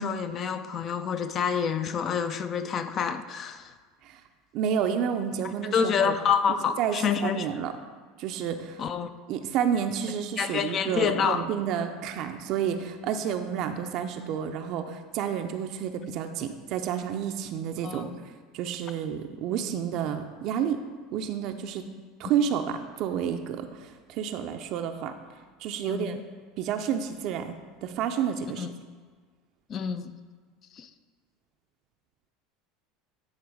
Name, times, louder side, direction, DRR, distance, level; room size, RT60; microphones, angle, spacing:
voice 1, 0.0-3.7 5.7-7.5 8.8-9.1 10.4-11.4 17.8-18.2 25.8-26.2 28.6-28.7 29.7-30.1 30.7-30.9, left 7 dB, 40° left, 10 dB, 0.5 m, -28 dB
voice 2, 4.5-6.1 6.8-7.0 7.2-7.7 8.2-8.8 9.3-18.1 18.5-20.8 21.1-21.9 22.2-25.1 25.6-26.2 26.6-28.7, right 8 dB, 55° right, 6 dB, 0.5 m, -30 dB
9.6 x 3.7 x 4.9 m, 1.5 s
hypercardioid pair, 75°, 0 cm